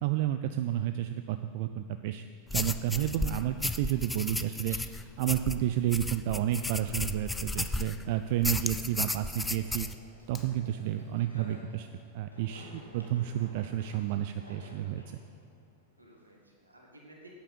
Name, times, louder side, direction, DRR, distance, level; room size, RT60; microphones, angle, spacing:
voice 1, 0.0-2.2 2.5-4.8 5.2-9.9 10.3-11.9 12.1-15.2, right 12 dB, 50° right, 9 dB, 0.4 m, -31 dB
sound 1, 2.5-8.0 8.4-9.9, left 2 dB, 10° left, 0.4 m, -34 dB
voice 2, 9.0-9.4 10.1-10.8 16.0-17.3, right 1 dB, 80° right, 0 dB, 2.1 m, -57 dB
sound 2, 9.4-16.5, equal, 90° left, 1.6 m, -54 dB
Fire, 10.2-11.2, left 6 dB, 25° left, 0.9 m, -52 dB
11.5 x 8.9 x 5.5 m, 2.1 s
figure-of-eight pair, 90°, 0 cm